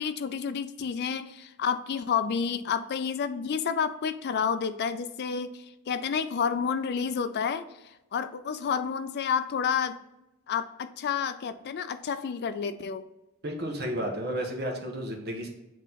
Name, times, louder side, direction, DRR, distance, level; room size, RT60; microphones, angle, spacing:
voice 1, 0.0-10.0 10.5-13.0, left 6 dB, 50° left, 11 dB, 0.4 m, -30 dB
voice 2, 13.4-15.5, equal, 50° right, 2 dB, 1.1 m, -32 dB
7.8 x 3.0 x 4.0 m, 0.94 s
head